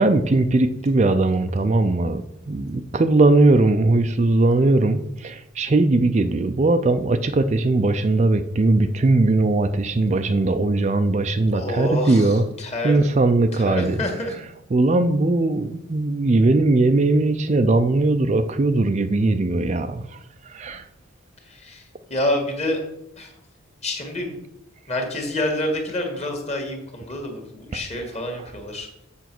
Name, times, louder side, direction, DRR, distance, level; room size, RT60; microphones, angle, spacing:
voice 1, 0.0-12.4 12.8-14.0 14.7-20.1 20.5-20.8, right 2 dB, 35° right, 9 dB, 0.4 m, -19 dB
voice 2, 11.5-13.1 13.5-14.4 21.4-22.8 23.2-23.3 23.8-24.4 24.9-28.9, left 1 dB, 30° left, 3 dB, 1.8 m, -28 dB
7.3 x 7.0 x 6.0 m, 0.85 s
head